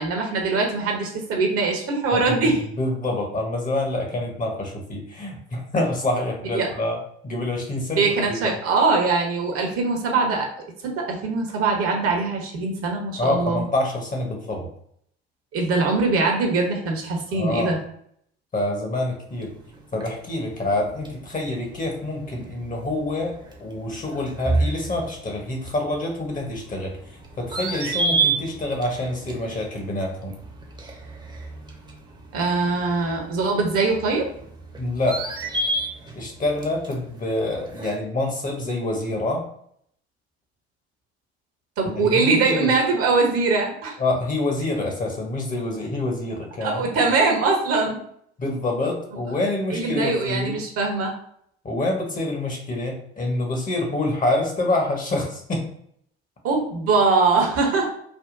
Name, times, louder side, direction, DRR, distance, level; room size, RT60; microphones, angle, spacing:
voice 1, 0.0-2.6 6.5-6.7 8.0-10.5 10.8-13.7 15.5-17.8 32.3-34.3 41.8-44.0 46.6-48.0 49.7-51.1 56.4-57.9, right 3 dB, 45° right, 1 dB, 0.9 m, -22 dB
voice 2, 2.8-7.0 7.2-8.6 13.2-14.7 17.3-17.7 18.5-19.5 19.9-30.4 34.8-35.2 36.1-39.5 41.9-42.7 44.0-46.8 48.4-50.6 51.6-55.6, left 2 dB, 25° left, 1 dB, 0.9 m, -26 dB
sound 1, 19.3-38.0, right 3 dB, 15° right, 0.8 m, -32 dB
3.4 x 2.2 x 2.5 m, 0.68 s
figure-of-eight pair, 65°, 32 cm